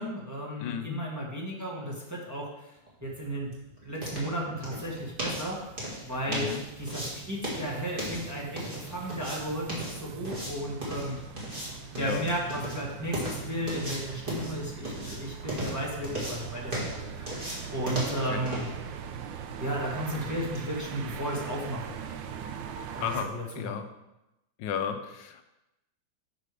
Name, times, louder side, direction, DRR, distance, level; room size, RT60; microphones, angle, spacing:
voice 1, 0.0-2.5 3.0-3.5 3.8-5.6 6.0-6.5 6.8-11.2 12.0-18.7 19.6-21.9 22.9-23.7, right 1 dB, 10° right, -4 dB, 1.4 m, -34 dB
voice 2, 0.6-1.0 6.3-6.6 12.0-12.3 18.1-18.5 23.0-23.9 24.6-25.4, left 8 dB, 75° left, 8 dB, 1.3 m, -34 dB
sound 1, 2.9-20.7, equal, 30° right, 2.2 m, -38 dB
sound 2, 4.6-23.3, right 8 dB, 85° right, 1.4 m, -42 dB
6.8 x 6.3 x 4.9 m, 0.94 s
omnidirectional pair, 2.0 m